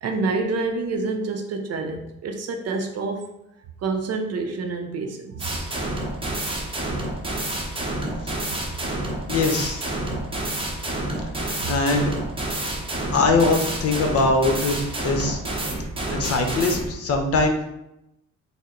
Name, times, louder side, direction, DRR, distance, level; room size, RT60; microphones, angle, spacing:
voice 1, 0.0-3.2 3.8-5.7 11.6-11.7, right 3 dB, 55° right, 4 dB, 0.5 m, -27 dB
sound 1, 5.4-16.9, right 1 dB, 20° right, 0.7 m, -29 dB
voice 2, 9.3-9.8 11.7-12.1 13.1-14.8 15.0-15.4 16.1-17.6, left 3 dB, 50° left, 3 dB, 0.8 m, -21 dB
4.1 x 2.0 x 3.7 m, 0.85 s
cardioid pair, 90°, 30 cm